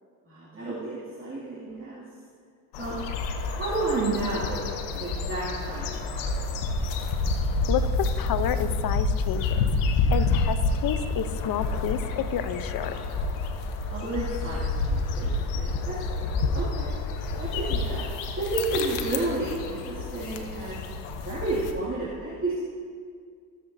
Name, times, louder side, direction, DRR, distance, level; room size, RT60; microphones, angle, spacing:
voice 1, 0.3-2.0 2.8-2.9 3.5-6.7 13.8-16.2 16.5-16.9 17.4-18.0 18.4-20.9 21.2-22.6, right 2 dB, 30° right, -8 dB, 2.5 m, -31 dB
sound 1, 2.7-21.7, left 3 dB, 80° left, 1.0 m, -28 dB
voice 2, 7.7-9.6 10.1-12.9, left 9 dB, 55° left, 11 dB, 0.8 m, -30 dB
17.0 x 7.5 x 2.7 m, 2.1 s
supercardioid pair, 65°, 43 cm